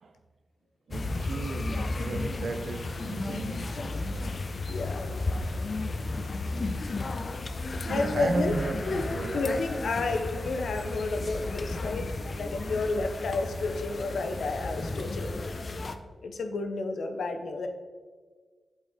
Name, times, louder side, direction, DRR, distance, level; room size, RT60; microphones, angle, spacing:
sound 1, 0.9-16.0, left 2 dB, 50° left, 0.5 m, -33 dB
voice 1, 0.9-3.7 7.9-9.6, right 3 dB, 70° right, 0.6 m, -34 dB
voice 2, 3.8-4.3 4.7-5.0 7.9-8.6 8.9-9.0 9.3-15.4 16.2-17.7, left 3 dB, 85° left, 0.7 m, -31 dB
8.1 x 4.2 x 3.6 m
cardioid pair, 75°, 0 cm